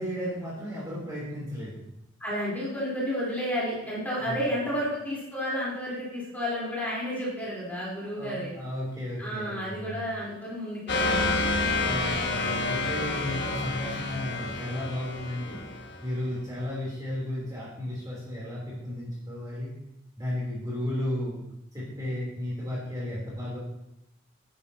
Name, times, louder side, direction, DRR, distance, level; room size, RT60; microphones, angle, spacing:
voice 1, 0.0-1.8 4.2-4.4 8.1-10.0 11.8-15.6 16.0-19.7 20.2-21.4 21.7-23.6, left 1 dB, 20° right, -6 dB, 3.2 m, -34 dB
voice 2, 2.2-8.5 9.2-11.5, equal, 10° left, -7 dB, 3.7 m, -31 dB
sound 1, 10.9-16.3, left 3 dB, 55° left, 1.4 m, -29 dB
10.5 x 10.5 x 2.8 m, 0.85 s
head